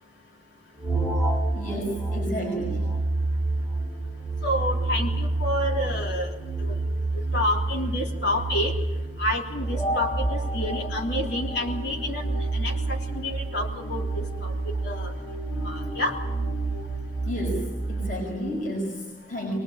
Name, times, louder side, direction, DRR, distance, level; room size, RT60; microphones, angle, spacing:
sound 1, 0.8-18.1, right 2 dB, 15° left, 2.5 m, -29 dB
voice 1, 1.5-2.8 17.2-19.6, equal, 50° left, 0 dB, 5.7 m, -31 dB
voice 2, 4.4-6.3 6.6-6.8 7.1-8.7 9.2-14.5 14.8-15.1 15.6-16.2, left 1 dB, 75° left, 1 dB, 3.5 m, -29 dB
23.5 x 20.5 x 8.9 m, 1.2 s
head